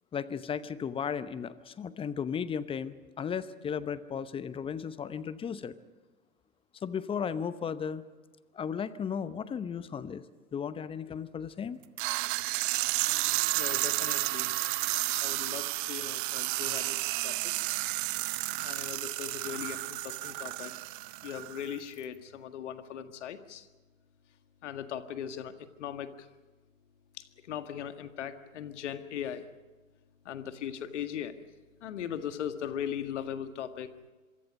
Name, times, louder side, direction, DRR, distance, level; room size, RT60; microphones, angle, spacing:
voice 1, 0.1-5.7 6.8-8.0 8.5-10.2 10.5-11.8, left 7 dB, 15° left, 15 dB, 0.8 m, -35 dB
sound 1, 12.0-21.8, right 21 dB, 40° right, 0.8 m, -32 dB
voice 2, 13.6-14.9 15.2-17.5 18.6-20.7 21.2-23.7 24.6-26.1 27.2-29.4 30.3-31.3 31.8-33.9, left 9 dB, 60° left, 9 dB, 1.8 m, -39 dB
26.0 x 24.0 x 5.4 m, 1.3 s
figure-of-eight pair, 105°, 40 cm